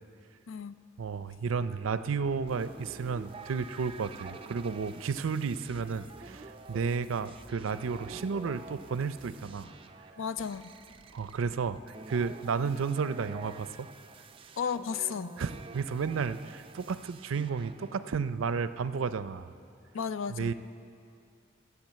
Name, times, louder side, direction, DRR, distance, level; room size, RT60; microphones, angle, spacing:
voice 1, 1.0-9.7 11.1-13.9 15.4-19.5 20.3-20.5, right 5 dB, 90° right, 13 dB, 0.5 m, -32 dB
sound 1, 1.4-9.5, equal, 55° left, 1.9 m, -58 dB
sound 2, 2.5-18.2, right 4 dB, 25° right, 0.4 m, -49 dB
voice 2, 10.2-10.6 14.6-15.4 19.9-20.5, left 7 dB, 80° left, 14 dB, 0.4 m, -33 dB
13.5 x 8.2 x 7.4 m, 2.4 s
head